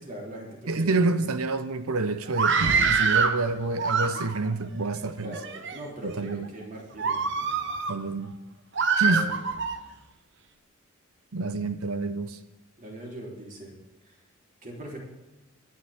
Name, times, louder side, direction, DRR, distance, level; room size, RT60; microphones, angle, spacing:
voice 1, 0.0-0.9 5.2-7.2 9.1-9.3 12.8-13.7 14.6-15.0, right 1 dB, 40° right, -2 dB, 3.6 m, -40 dB
voice 2, 0.7-5.4 6.0-6.5 7.9-8.4 9.0-9.3 11.3-12.4, right 3 dB, 85° right, 11 dB, 0.8 m, -28 dB
Screaming, 2.3-3.4 3.8-4.5 5.2-5.8 6.3-6.5 7.0-8.0 8.8-9.8, right 5 dB, 55° right, 1.0 m, -25 dB
24.0 x 10.5 x 3.6 m, 1.0 s
head